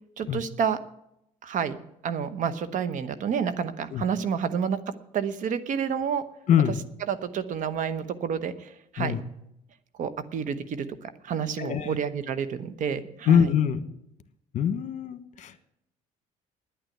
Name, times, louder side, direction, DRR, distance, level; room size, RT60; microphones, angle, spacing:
voice 1, 0.2-0.8 1.4-1.8 2.0-4.8 5.1-6.2 7.1-9.1 10.0-13.5, right 7 dB, 60° right, 12 dB, 1.1 m, -29 dB
voice 2, 6.5-6.8 9.0-9.2 11.6-11.9 13.3-13.8 14.5-15.6, left 8 dB, 55° left, 11 dB, 1.3 m, -23 dB
9.9 x 9.2 x 9.1 m, 0.80 s
cardioid pair, 95°, 15 cm